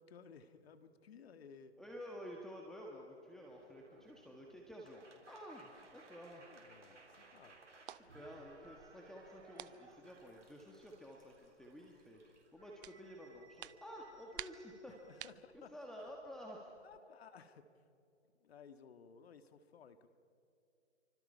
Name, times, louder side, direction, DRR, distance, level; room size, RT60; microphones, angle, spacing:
voice 1, 0.0-1.7 6.4-7.6 15.0-15.7 16.8-17.8 18.4-20.1, left 6 dB, 60° left, 9 dB, 1.8 m, -58 dB
voice 2, 1.8-6.5 7.9-12.2 12.5-14.9 15.5-16.7, equal, ahead, -1 dB, 1.4 m, -51 dB
sound 1, 3.5-15.3, right 3 dB, 90° right, 4.2 m, -62 dB
sound 2, 5.7-17.0, right 11 dB, 50° right, 0.6 m, -57 dB
28.5 x 25.0 x 5.6 m, 2.6 s
hypercardioid pair, 140°, 35 cm